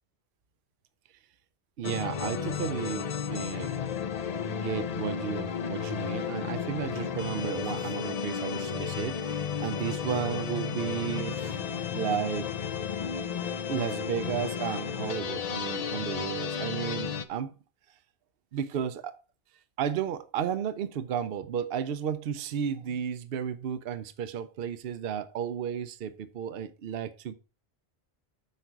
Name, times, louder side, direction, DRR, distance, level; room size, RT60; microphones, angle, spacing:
sound 1, 1.8-17.2, left 7 dB, 45° left, 0.6 m, -33 dB
voice 1, 1.8-3.8 4.5-11.6 11.9-12.5 13.7-17.5 18.5-19.2 19.8-27.3, right 8 dB, 70° right, 0.8 m, -33 dB
8.3 x 5.1 x 4.5 m
omnidirectional pair, 1.1 m